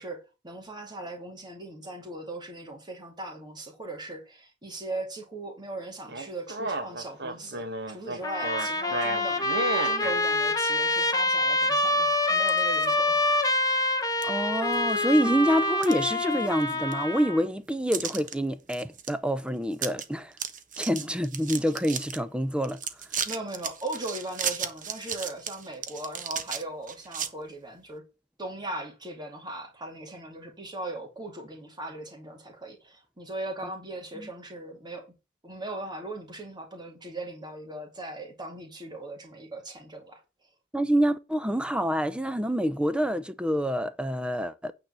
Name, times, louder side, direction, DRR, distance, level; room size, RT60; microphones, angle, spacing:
voice 1, 0.0-13.2 23.2-28.0 28.4-35.1 35.4-40.2, right 2 dB, 20° right, 2.4 m, -39 dB
sound 1, 6.1-10.2, right 2 dB, 55° right, 1.8 m, -32 dB
Trumpet, 8.2-17.4, left 2 dB, 20° left, 1.4 m, -26 dB
sound 2, 12.4-12.9 13.4-13.5 14.2-14.3 14.7-15.2 15.6-16.6 16.9-17.0 17.9-18.3 18.7-19.1 19.4-19.5 19.7-20.0 20.3-22.2 22.6-27.3, right 7 dB, 40° right, 1.1 m, -35 dB
voice 2, 14.2-20.3 20.8-22.8 34.1-34.3 40.7-44.7, equal, 5° right, 0.7 m, -27 dB
9.3 x 4.4 x 6.9 m
head